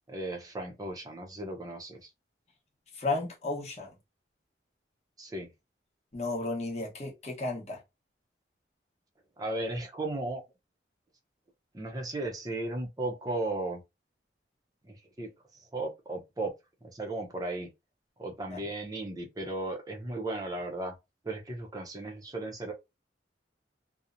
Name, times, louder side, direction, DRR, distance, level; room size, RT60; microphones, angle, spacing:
voice 1, 0.1-2.0 5.2-5.5 9.4-10.4 11.7-13.8 14.8-16.6 16.8-17.7 18.2-20.9 21.2-22.7, right 2 dB, 20° right, 0.5 m, -35 dB
voice 2, 2.9-3.9 6.1-7.8 18.5-18.6, left 3 dB, 35° left, 0.9 m, -33 dB
2.8 x 2.0 x 2.4 m
head